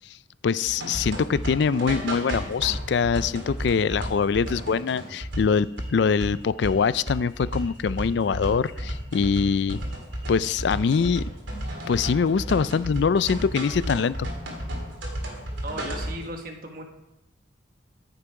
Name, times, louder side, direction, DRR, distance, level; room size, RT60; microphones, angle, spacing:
voice 1, 0.4-9.8 10.3-11.2 11.9-14.2, left 5 dB, 65° left, 17 dB, 0.4 m, -23 dB
sound 1, 0.6-16.3, equal, 80° right, 2.8 m, -33 dB
voice 2, 15.6-16.8, right 1 dB, 50° right, 3 dB, 1.5 m, -36 dB
14.5 x 6.9 x 4.8 m, 0.88 s
head